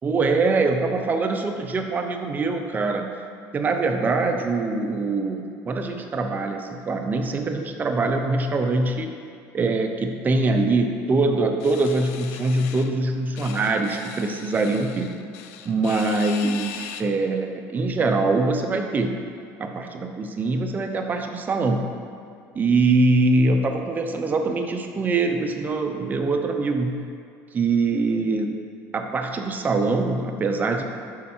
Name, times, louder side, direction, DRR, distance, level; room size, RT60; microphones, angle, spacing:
voice 1, 0.0-3.1 3.5-9.1 9.5-15.1 15.6-19.1 19.6-21.9 22.5-27.0 27.5-30.8, right 3 dB, 25° right, 4 dB, 0.6 m, -23 dB
sound 1, 11.6-12.9 13.4-17.0, left 9 dB, 90° left, 0.5 m, -39 dB
7.4 x 5.2 x 4.4 m, 2.4 s
supercardioid pair, 120°, 7 cm